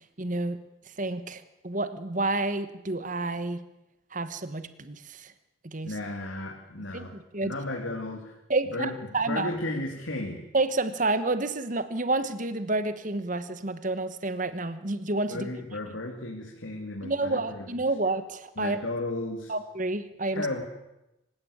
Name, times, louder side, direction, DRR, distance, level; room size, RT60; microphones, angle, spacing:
voice 1, 0.2-0.6 1.0-3.7 4.1-5.3 5.6-5.9 6.9-7.0 7.3-7.5 8.5-9.5 10.5-15.5 17.0-18.8 19.5-20.5, right 2 dB, 40° right, 12 dB, 1.3 m, -29 dB
voice 2, 5.8-7.1 7.4-8.4 8.7-8.9 9.3-10.4 15.3-17.8 18.6-19.5 20.3-20.6, left 2 dB, 70° left, 1 dB, 3.1 m, -34 dB
26.0 x 16.5 x 8.9 m, 0.92 s
head